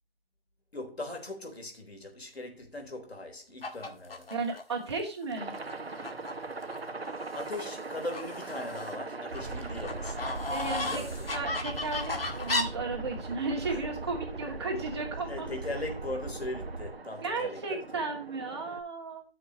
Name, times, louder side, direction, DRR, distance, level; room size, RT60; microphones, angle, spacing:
voice 1, 0.7-4.3 7.3-10.5 10.8-11.5 13.7-13.8 15.3-18.0, left 2 dB, 85° left, 3.6 m, -40 dB
sound 1, 3.6-4.6 5.2-5.3 5.6-6.3 6.6-7.7 8.1-9.0 9.3-12.6, left 2 dB, 65° left, 2.1 m, -35 dB
voice 2, 4.3-5.5 10.5-11.0 11.3-15.5 17.2-19.2, right 3 dB, 25° right, 2.6 m, -34 dB
Aircraft, 5.4-18.8, right 3 dB, 80° right, 1.6 m, -42 dB
sound 2, 9.3-16.9, right 3 dB, 50° right, 1.2 m, -40 dB
14.0 x 6.7 x 3.0 m
figure-of-eight pair, 175°, 31 cm